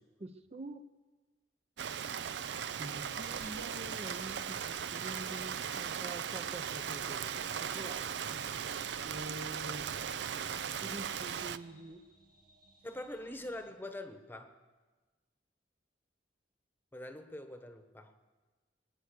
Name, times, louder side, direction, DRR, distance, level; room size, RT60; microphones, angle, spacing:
voice 1, 0.2-0.9 2.8-8.8 9.0-10.0 10.8-12.1, right 1 dB, 35° right, 8 dB, 0.7 m, -47 dB
sound 1, 1.8-13.7, right 2 dB, 55° right, 1.9 m, -64 dB
Rain, 1.8-11.6, right 8 dB, 75° right, 0.5 m, -38 dB
voice 2, 12.8-14.6 16.9-18.2, left 1 dB, 10° left, 7 dB, 1.0 m, -44 dB
22.5 x 9.5 x 6.7 m, 1.3 s
head